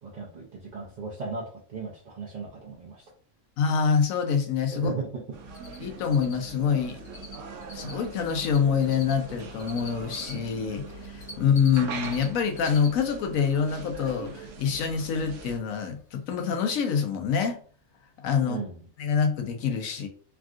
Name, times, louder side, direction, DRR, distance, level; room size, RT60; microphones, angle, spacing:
voice 1, 0.0-3.1 4.7-5.4 18.4-18.9, right 4 dB, 50° right, -4 dB, 0.5 m, -36 dB
voice 2, 3.6-4.9 5.8-7.0 7.7-17.6 18.2-18.6 19.0-20.1, left 6 dB, 85° left, 5 dB, 1.0 m, -26 dB
sound 1, 5.3-15.6, right 4 dB, 70° right, 0.9 m, -41 dB
Cricket, 5.5-5.8 6.0-7.4 7.6-10.3 10.9-12.2 12.5-12.9 13.2-13.3 15.8-15.9 16.3-16.4 16.6-16.7, left 4 dB, 45° left, 0.6 m, -44 dB
3.5 x 2.4 x 2.4 m, 0.43 s
omnidirectional pair, 1.4 m